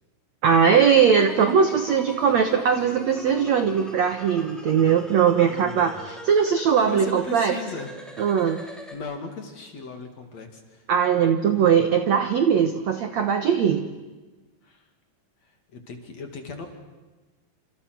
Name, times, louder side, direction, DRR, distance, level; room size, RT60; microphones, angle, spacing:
voice 1, 0.4-7.6 8.2-8.6 10.9-13.9, right 7 dB, 85° right, 7 dB, 1.5 m, -20 dB
sound 1, 1.0-8.9, left 1 dB, ahead, 4.0 m, -42 dB
voice 2, 5.4-6.1 6.8-7.9 8.5-10.9 14.6-14.8 15.7-16.7, left 4 dB, 45° left, 5 dB, 3.1 m, -37 dB
29.5 x 27.5 x 6.2 m, 1.2 s
omnidirectional pair, 5.1 m